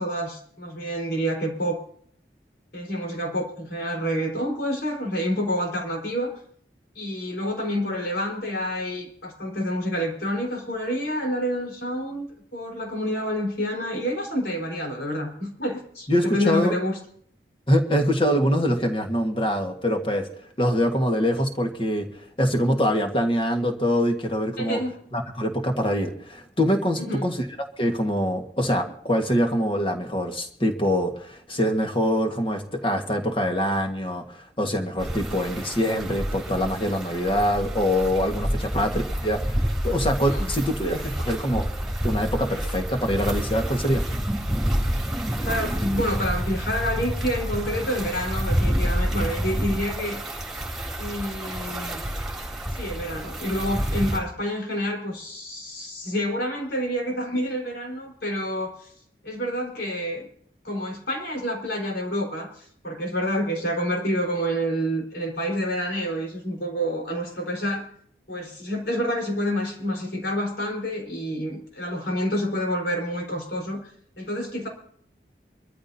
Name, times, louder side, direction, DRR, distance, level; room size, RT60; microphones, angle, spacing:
voice 1, 0.0-1.8 2.7-6.3 6.9-12.3 12.5-16.9 24.6-24.9 27.0-27.2 40.3-40.5 45.5-50.2 51.0-52.0 52.6-58.9 59.2-60.3 60.6-67.9 68.3-73.8 74.2-74.7, equal, 70° left, 0 dB, 4.4 m, -28 dB
voice 2, 16.1-16.7 17.7-20.3 20.6-22.1 22.4-24.8 25.1-27.4 27.8-41.7 42.0-44.0, equal, 30° left, 3 dB, 1.6 m, -24 dB
sound 1, 35.0-54.2, equal, 5° right, 3.5 m, -28 dB
24.5 x 13.5 x 2.8 m, 0.65 s
head